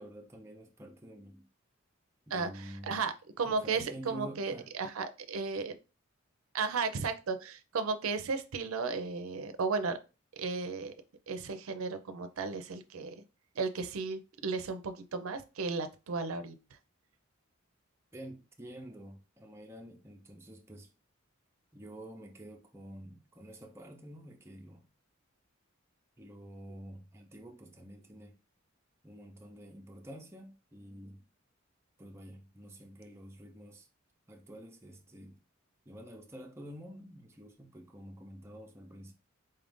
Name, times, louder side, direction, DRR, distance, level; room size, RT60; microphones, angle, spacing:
voice 1, 0.0-1.5 2.3-3.0 3.4-4.7 18.1-20.9 21.7-24.8 26.2-28.3 29.0-31.3 32.0-33.9 34.3-35.4 35.9-39.1, right 1 dB, 15° right, 0.6 m, -49 dB
voice 2, 2.3-5.8 6.5-10.0 10.4-10.9 11.3-13.2 13.6-16.6, right 4 dB, 90° right, 0.5 m, -34 dB
4.2 x 2.5 x 3.5 m
head